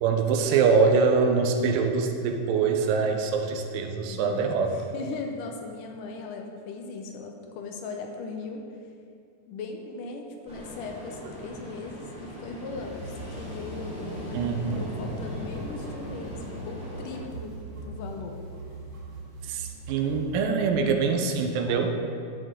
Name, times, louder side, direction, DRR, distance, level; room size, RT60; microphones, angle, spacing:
voice 1, 0.0-4.7 14.3-14.9 19.5-21.9, right 5 dB, 85° right, 4 dB, 2.3 m, -24 dB
voice 2, 4.0-8.6 9.5-18.4, left 3 dB, 75° left, 2 dB, 2.2 m, -38 dB
Ocean, 10.5-17.2, left 1 dB, ahead, 1.5 m, -40 dB
sound 1, 12.7-20.4, right 2 dB, 45° right, 1.9 m, -41 dB
11.0 x 7.9 x 3.7 m, 2.4 s
omnidirectional pair, 4.0 m